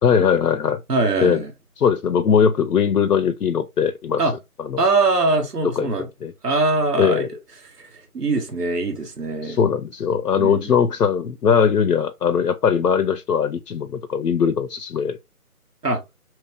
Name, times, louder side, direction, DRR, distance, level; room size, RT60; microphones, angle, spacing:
voice 1, 0.0-0.8 1.2-1.4 1.8-4.2 4.6-4.8 5.8-5.9 6.2-6.3 7.0-7.3 9.4-15.2, left 7 dB, 85° left, 0.6 m, -20 dB
voice 2, 0.9-1.5 4.2-4.3 4.8-6.1 6.4-7.2 7.8-9.6 10.4-10.7 15.8-16.0, right 3 dB, 80° right, 1.2 m, -22 dB
2.9 x 2.7 x 3.3 m
figure-of-eight pair, 165°, 46 cm